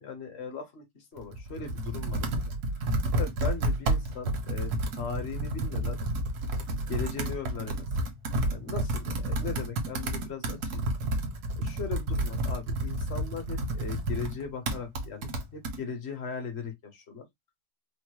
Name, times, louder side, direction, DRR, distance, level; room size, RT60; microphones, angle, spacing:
voice 1, 0.0-2.4 2.7-2.9 3.1-6.0 6.9-7.9 8.5-10.8 11.6-17.3, left 5 dB, 50° left, 1.1 m, -38 dB
Computer keyboard, 1.2-15.8, right 1 dB, 85° right, 1.5 m, -31 dB
4.5 x 2.1 x 3.0 m
omnidirectional pair, 1.6 m